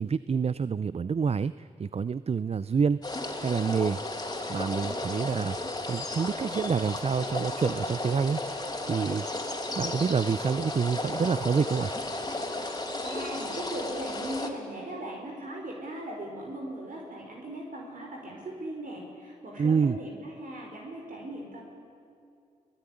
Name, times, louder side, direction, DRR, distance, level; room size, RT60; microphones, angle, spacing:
voice 1, 0.0-3.0 3.4-4.0 4.5-5.6 5.9-8.4 8.8-9.3 9.8-11.9 19.6-20.0, right 6 dB, 45° right, 17 dB, 0.5 m, -27 dB
sound 1, 3.0-14.5, left 2 dB, 25° left, 3.6 m, -34 dB
voice 2, 13.0-21.7, right 1 dB, 65° right, 0 dB, 5.1 m, -38 dB
22.5 x 18.5 x 10.0 m, 2.4 s
cardioid pair, 50°, 15 cm